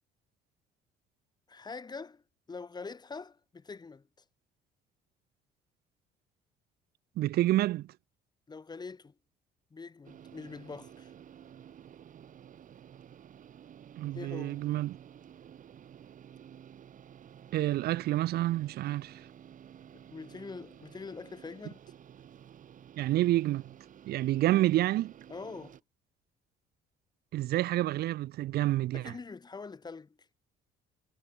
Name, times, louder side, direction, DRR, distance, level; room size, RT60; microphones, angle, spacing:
voice 1, 1.5-2.2 2.5-4.1 8.5-9.1 9.7-11.1 14.1-14.6 19.9-21.8 24.3-24.5 25.3-25.8 28.9-30.2, left 4 dB, 25° left, 4.9 m, -44 dB
voice 2, 7.2-7.9 14.0-15.0 17.5-19.2 23.0-23.7 24.1-25.1 27.3-29.1, right 15 dB, 70° right, 0.9 m, -28 dB
sound 1, 10.0-25.8, right 9 dB, 50° right, 6.7 m, -52 dB
cardioid pair, 110°, 17 cm